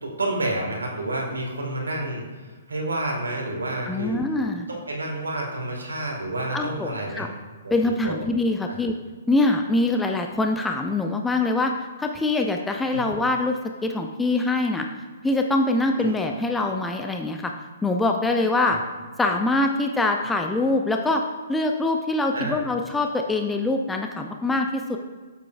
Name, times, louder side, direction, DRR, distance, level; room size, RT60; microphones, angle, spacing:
voice 1, 0.0-4.2 4.7-7.3 7.6-8.2 8.7-8.8 12.9-13.1 16.0-16.1 18.7-18.8 22.3-22.6, right 1 dB, 80° right, -1 dB, 1.8 m, -29 dB
voice 2, 3.9-4.7 6.5-7.3 7.7-9.0 9.3-11.7 12.0-14.9 15.2-17.5 17.8-18.8 19.2-21.2 21.5-25.0, left 2 dB, 10° left, 3 dB, 0.4 m, -24 dB
7.9 x 6.7 x 2.5 m, 1.4 s
figure-of-eight pair, 120°, 0 cm